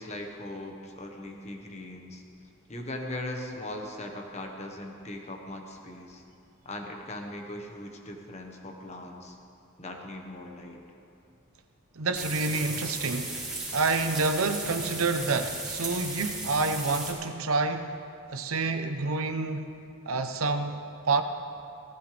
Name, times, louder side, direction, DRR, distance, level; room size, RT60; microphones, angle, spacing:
voice 1, 0.0-2.2 2.7-6.2 6.6-9.4 9.8-10.8, left 1 dB, 30° left, 2 dB, 1.3 m, -39 dB
voice 2, 12.0-13.4 13.7-18.0 18.3-19.8 20.1-21.2, right 3 dB, 90° right, 8 dB, 0.9 m, -28 dB
sound 1, 12.1-17.1, right 3 dB, 5° right, 3.8 m, -36 dB
18.0 x 15.0 x 3.4 m, 2.6 s
head